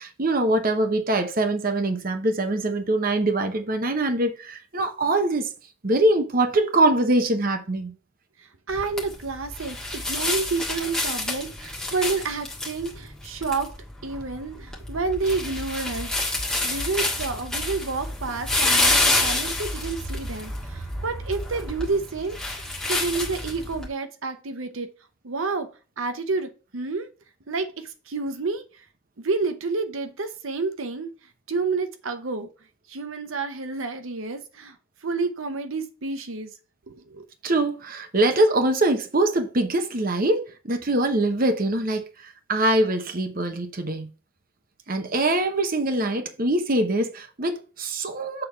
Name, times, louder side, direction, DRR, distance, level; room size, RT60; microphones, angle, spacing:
voice 1, 0.0-5.5 5.8-7.9 37.4-44.1 44.9-48.4, right 2 dB, 45° right, 0.9 m, -23 dB
voice 2, 8.4-13.7 14.0-16.1 16.6-24.9 25.2-25.7 26.0-27.1 27.5-28.8 29.2-31.1 31.5-32.5 32.9-34.8 35.0-36.5 36.9-37.2, right 3 dB, 75° right, 0.8 m, -29 dB
sound 1, 8.7-23.9, left 2 dB, 5° left, 1.5 m, -28 dB
6.8 x 3.6 x 5.5 m
head